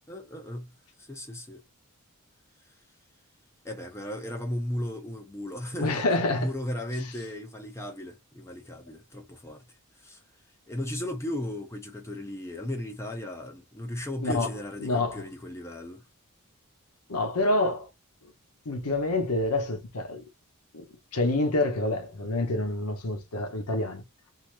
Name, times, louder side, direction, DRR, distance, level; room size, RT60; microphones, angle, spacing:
voice 1, 0.1-0.7 1.0-1.6 3.6-9.6 10.0-10.2 10.7-16.0, left 1 dB, 10° left, 0.6 m, -35 dB
voice 2, 5.8-6.5 14.2-14.5 14.8-15.2 17.1-17.9 18.6-20.2 20.7-20.9 21.1-24.0, left 2 dB, 80° left, 1.0 m, -27 dB
3.2 x 2.7 x 2.5 m
head